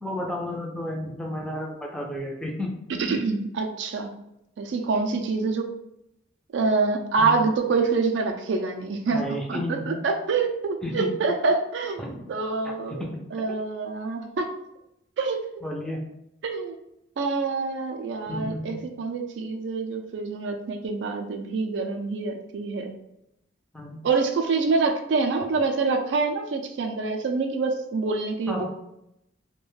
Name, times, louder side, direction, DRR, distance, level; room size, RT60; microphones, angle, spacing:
voice 1, 0.0-2.7 7.2-7.4 9.1-10.0 10.8-11.1 12.0-12.2 12.9-13.2 15.6-16.0 18.3-18.8 23.7-24.0 28.5-28.6, left 1 dB, 5° left, -2 dB, 0.4 m, -32 dB
voice 2, 3.0-4.1 4.6-5.7 6.5-9.2 9.5-12.0 12.3-13.0 13.3-14.5 15.2-15.4 16.4-16.7 17.2-22.9 24.0-28.6, right 4 dB, 65° right, 4 dB, 0.4 m, -26 dB
2.4 x 2.2 x 3.1 m, 0.83 s
head